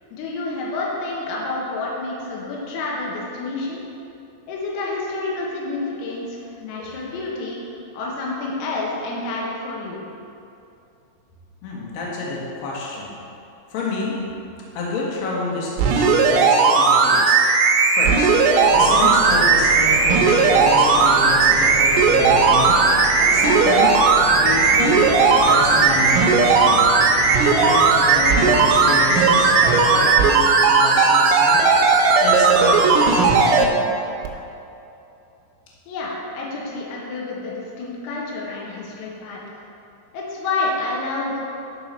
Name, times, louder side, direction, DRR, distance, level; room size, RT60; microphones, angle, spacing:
voice 1, 0.1-3.8 4.5-7.6 7.9-10.0 35.9-39.4 40.1-41.4, left 3 dB, 90° left, -3 dB, 4.1 m, -29 dB
voice 2, 11.6-13.2 13.7-14.1 14.7-17.4 17.9-18.3 18.7-22.8 23.3-23.9 24.3-25.0 25.3-26.9 27.3-31.6 32.2-34.0, left 2 dB, 60° left, -5 dB, 2.7 m, -28 dB
sound 1, 15.8-33.7 34.2-34.3, right 4 dB, 85° right, 3.4 m, -16 dB
sound 2, 18.6-30.1, right 2 dB, 65° right, 1.5 m, -30 dB
11.5 x 4.9 x 5.6 m, 2.7 s
omnidirectional pair, 5.9 m